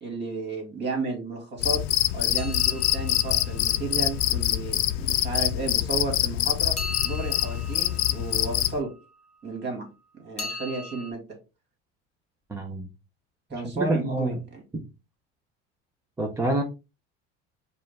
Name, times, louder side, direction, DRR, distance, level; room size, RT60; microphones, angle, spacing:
voice 1, 0.0-1.8 2.1-6.8 7.0-8.9 9.4-9.9 10.1-11.4 13.5-14.6, right 3 dB, 35° right, 3 dB, 2.1 m, -33 dB
Cricket, 1.6-8.8, left 14 dB, 75° left, 0.5 m, -25 dB
sound 1, 2.4-4.4 6.8-9.1 10.4-11.1, left 2 dB, 20° left, 1.3 m, -39 dB
voice 2, 12.5-12.9 13.8-14.4 14.7-14.8 16.2-16.6, right 2 dB, 10° right, 2 dB, 0.5 m, -27 dB
4.9 x 2.4 x 3.4 m, 0.29 s
supercardioid pair, 125°, 31 cm